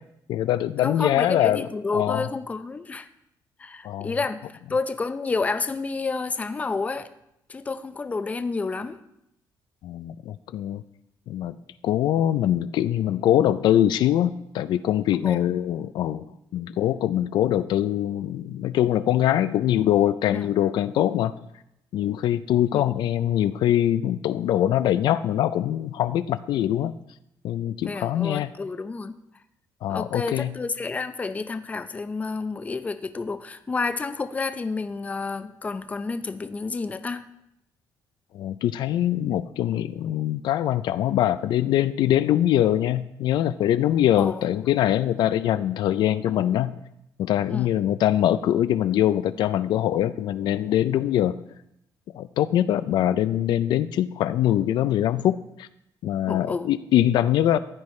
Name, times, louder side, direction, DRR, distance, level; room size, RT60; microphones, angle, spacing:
voice 1, 0.3-1.7 1.9-2.3 3.8-4.1 9.8-10.8 11.3-11.5 11.8-16.3 16.5-21.3 21.9-26.9 27.4-28.5 29.8-30.5 38.3-46.7 47.2-51.3 52.1-55.7 56.0-57.6, left 12 dB, 75° left, 13 dB, 0.4 m, -23 dB
voice 2, 0.8-3.1 3.6-7.1 7.5-9.0 15.1-15.4 20.3-20.5 22.7-22.9 27.8-29.2 29.9-37.2 44.2-44.4 47.5-47.7 56.3-56.7, left 4 dB, 20° left, 10 dB, 0.5 m, -30 dB
15.0 x 9.8 x 3.2 m, 0.82 s
cardioid pair, 140°, 8 cm